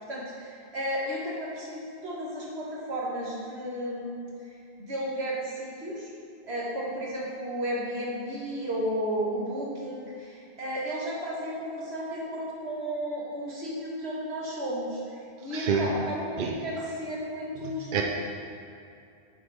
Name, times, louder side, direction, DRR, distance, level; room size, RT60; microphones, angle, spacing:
voice 1, 0.1-4.3 4.8-6.1 6.4-18.0, equal, 80° right, -5 dB, 1.9 m, -33 dB
voice 2, 15.5-15.9 16.4-16.5 17.6-18.0, right 6 dB, 60° right, 1 dB, 0.8 m, -27 dB
8.4 x 7.6 x 3.5 m, 2.6 s
omnidirectional pair, 1.1 m